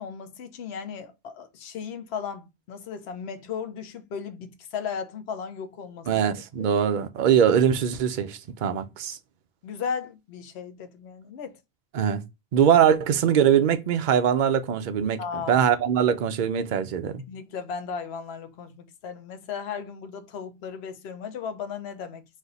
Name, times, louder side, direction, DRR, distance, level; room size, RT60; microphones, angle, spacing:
voice 1, 0.0-6.7 9.6-11.6 15.2-15.7 17.3-22.3, left 6 dB, 70° left, 0.9 m, -36 dB
voice 2, 6.1-9.2 11.9-12.2 12.5-17.2, right 8 dB, 55° right, 0.6 m, -22 dB
4.2 x 2.6 x 3.9 m
omnidirectional pair, 1.1 m